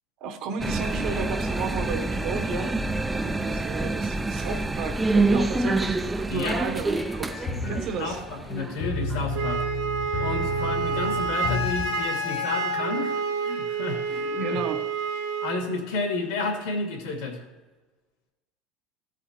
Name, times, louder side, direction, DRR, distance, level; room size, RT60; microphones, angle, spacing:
voice 1, 0.2-2.8 3.1-8.2 14.1-14.9, right 5 dB, 45° right, 5 dB, 1.0 m, -33 dB
sound 1, 0.6-9.2, right 2 dB, 10° right, 0.3 m, -27 dB
sound 2, 6.9-12.5, left 2 dB, 45° left, 1.0 m, -32 dB
voice 2, 8.0-9.6 10.2-14.6 15.4-17.4, left 3 dB, 80° left, 2 dB, 2.2 m, -31 dB
Wind instrument woodwind instrument, 9.3-15.6, right 4 dB, 85° right, 1.1 m, -28 dB
14.5 x 4.9 x 4.2 m, 1.2 s
cardioid pair, 170°, 0 cm